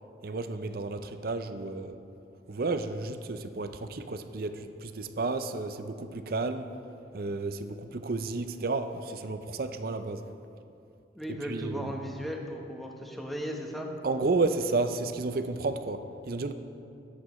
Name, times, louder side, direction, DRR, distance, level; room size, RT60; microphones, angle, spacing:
voice 1, 0.2-2.0 2.5-6.7 7.1-10.2 11.4-11.9 14.0-16.5, right 3 dB, 55° right, 9 dB, 0.5 m, -32 dB
voice 2, 11.1-13.9, equal, ahead, 0 dB, 1.0 m, -36 dB
19.0 x 8.4 x 3.1 m, 2.7 s
head